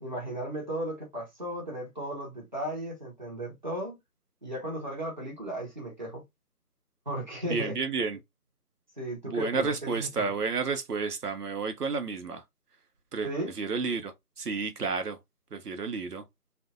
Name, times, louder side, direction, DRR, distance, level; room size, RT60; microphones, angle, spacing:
voice 1, 0.0-4.0 4.4-6.2 7.1-7.7 9.0-10.3 13.2-13.5, right 1 dB, 30° right, 0.8 m, -35 dB
voice 2, 7.5-8.2 9.2-12.4 13.1-13.3 13.6-15.2 15.5-16.2, right 4 dB, 80° right, 0.7 m, -31 dB
2.5 x 2.1 x 2.4 m
figure-of-eight pair, 165°, 46 cm